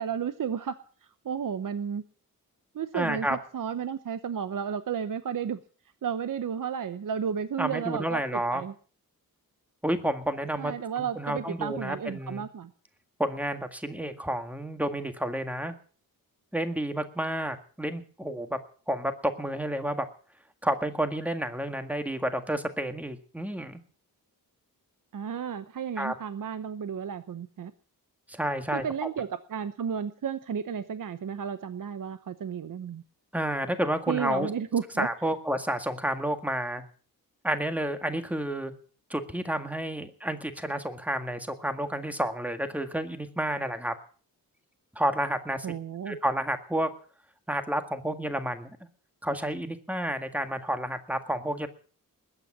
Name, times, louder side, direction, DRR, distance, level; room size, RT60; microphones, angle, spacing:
voice 1, 0.0-2.0 2.7-5.6 6.0-8.7 10.6-12.7 25.1-27.7 28.7-33.0 34.1-35.1 45.6-46.2, right 7 dB, 60° right, 12 dB, 0.9 m, -33 dB
voice 2, 2.9-3.4 7.6-8.6 9.8-12.4 13.2-15.7 16.5-18.6 18.9-19.1 19.4-20.1 20.6-23.8 26.0-26.2 28.3-28.8 33.3-34.5 35.0-36.8 37.4-38.7 39.1-43.9 45.0-45.7 46.1-46.9 47.5-48.7 49.2-51.7, right 1 dB, 5° right, 7 dB, 1.7 m, -30 dB
20.5 x 9.0 x 7.3 m, 0.43 s
wide cardioid pair, 145°, 36 cm